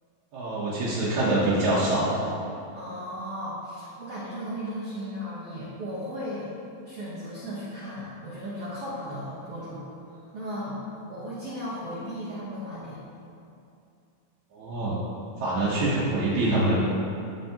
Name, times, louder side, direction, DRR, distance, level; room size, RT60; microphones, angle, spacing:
voice 1, 0.3-2.2 14.5-15.0 15.4-16.8, right 2 dB, 70° right, -8 dB, 1.8 m, -25 dB
voice 2, 2.7-6.5 6.8-10.8 11.1-13.0, equal, 90° right, -10 dB, 1.3 m, -36 dB
12.5 x 4.4 x 2.9 m, 2.6 s
omnidirectional pair, 4.6 m